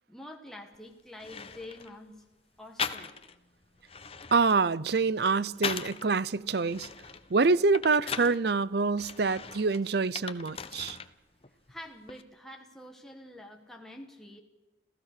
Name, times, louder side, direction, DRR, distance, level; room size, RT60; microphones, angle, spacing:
voice 1, 0.1-2.2 2.6-3.1 11.7-14.4, left 1 dB, ahead, 1.4 m, -47 dB
sound 1, 0.7-0.8 1.2-1.9 2.8-3.4 3.8-6.1 6.5-8.4 9.0-11.1 11.4-12.2, left 6 dB, 30° left, 0.8 m, -39 dB
voice 2, 4.3-6.9 7.3-11.0, right 4 dB, 55° right, 0.6 m, -26 dB
27.0 x 15.5 x 6.7 m
head